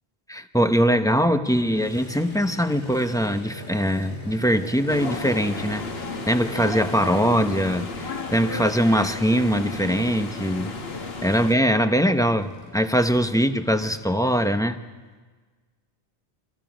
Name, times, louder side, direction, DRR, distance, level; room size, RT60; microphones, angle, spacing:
voice 1, 0.3-5.8 6.3-10.7 11.2-14.8, equal, 5° left, 8 dB, 0.8 m, -22 dB
Motorcycle, 1.5-14.6, equal, 90° left, 3.0 m, -41 dB
sound 1, 4.9-11.5, left 4 dB, 70° left, 1.5 m, -33 dB
28.5 x 25.5 x 5.1 m, 1.4 s
omnidirectional pair, 1.1 m